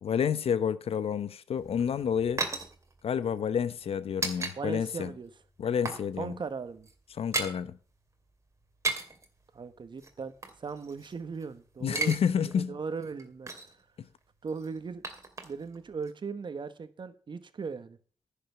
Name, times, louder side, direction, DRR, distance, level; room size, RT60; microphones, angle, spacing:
voice 1, 0.0-2.5 3.0-5.1 5.6-6.4 7.2-7.8 11.8-12.8, left 7 dB, 75° left, 0.8 m, -29 dB
sound 1, 1.6-4.6 4.8-5.0 5.4-6.1 6.3-6.5 6.8-7.6 8.6-9.3 10.0-11.4 11.7-12.2 12.5-12.6 13.0-13.8 14.5-16.1, right 3 dB, 30° right, 2.5 m, -36 dB
voice 2, 4.4-5.3 6.2-6.9 9.5-12.1 12.4-13.8 14.4-15.0 15.4-18.0, right 5 dB, 50° right, 1.3 m, -38 dB
10.5 x 6.9 x 8.0 m
cardioid pair, 85°, 10 cm